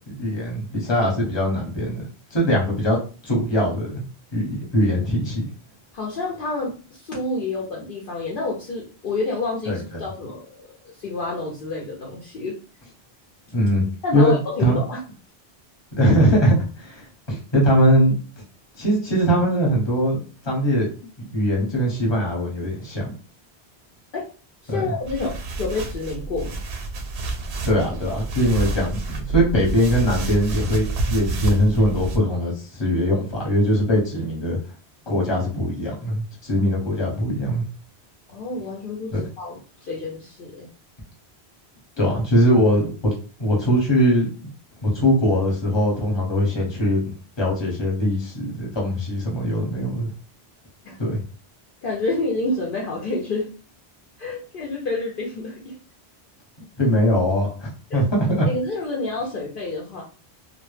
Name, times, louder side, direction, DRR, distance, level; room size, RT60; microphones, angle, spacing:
voice 1, 0.1-4.0 4.3-5.4 9.7-9.8 13.5-13.8 14.1-14.8 16.0-18.1 18.8-20.9 21.3-23.1 24.7-24.9 27.6-34.6 35.1-37.6 39.1-39.2 42.0-43.1 43.4-44.3 44.8-47.0 47.4-50.1 51.0-51.2 56.8-58.5, equal, 25° left, -3 dB, 0.9 m, -21 dB
voice 2, 5.9-12.6 14.0-15.0 24.1-24.3 24.6-26.6 38.3-40.7 50.8-51.0 51.8-53.5 54.2-55.8 57.9-58.0 58.5-60.0, left 3 dB, 60° left, -3 dB, 0.7 m, -28 dB
sound 1, 25.0-32.2, right 2 dB, 85° right, 0.9 m, -28 dB
2.1 x 2.1 x 3.1 m, 0.37 s
omnidirectional pair, 1.1 m